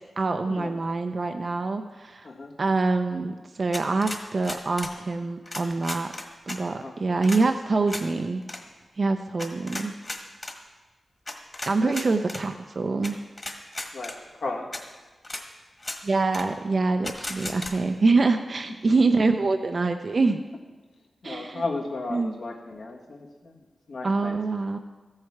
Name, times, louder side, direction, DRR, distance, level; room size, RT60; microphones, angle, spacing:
voice 1, 0.2-2.3 2.6-6.1 6.5-8.4 9.0-9.9 11.6-13.2 16.0-20.4 21.2-21.6 22.1-22.3 24.0-24.8, right 3 dB, 50° right, 6 dB, 0.5 m, -25 dB
voice 2, 2.2-2.6 6.7-7.0 11.8-12.0 13.9-14.7 18.7-18.8 21.2-24.4, left 3 dB, 75° left, 0 dB, 1.6 m, -35 dB
sound 1, 3.7-5.0 5.5-6.6 7.2-7.4 7.9-8.1 8.4-8.6 9.4-10.6 11.3-12.4 13.0-13.1 13.4-14.2 14.7-14.8 15.2-15.4 15.8-16.0 16.3-16.5 17.0-17.7, left 2 dB, 30° left, 1.4 m, -35 dB
14.0 x 6.5 x 4.7 m, 1.3 s
cardioid pair, 65°, 0 cm